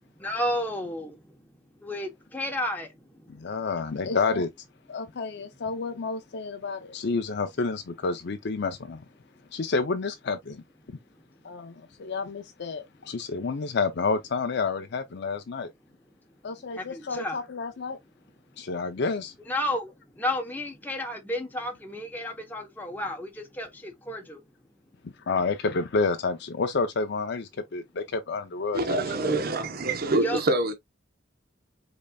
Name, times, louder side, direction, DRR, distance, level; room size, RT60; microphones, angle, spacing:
voice 1, 0.2-1.4 1.8-2.9 3.5-3.6 16.7-17.4 19.5-24.4 30.2-30.4, left 1 dB, 10° left, 0.9 m, -32 dB
voice 2, 3.3-4.5 4.9-9.0 9.5-10.6 10.9-11.0 11.4-15.7 16.4-18.0 18.6-19.3 25.0-29.0, left 4 dB, 60° left, 0.6 m, -29 dB
voice 3, 28.7-30.7, right 2 dB, 55° right, 0.9 m, -25 dB
5.3 x 3.9 x 2.3 m
head